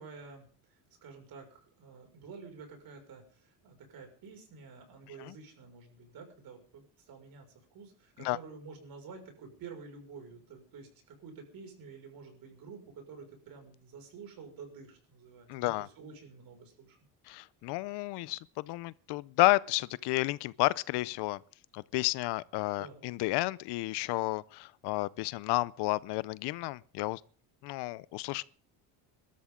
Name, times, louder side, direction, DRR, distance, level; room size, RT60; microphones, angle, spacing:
voice 1, 0.0-7.5 7.7-17.0 22.8-23.0, right 5 dB, 60° right, 6.0 m, -50 dB
voice 2, 15.5-15.9 17.3-21.4 21.7-27.2 27.6-28.4, left 20 dB, 80° left, 0.7 m, -31 dB
22.0 x 13.0 x 3.8 m
cardioid pair, 120°, 40 cm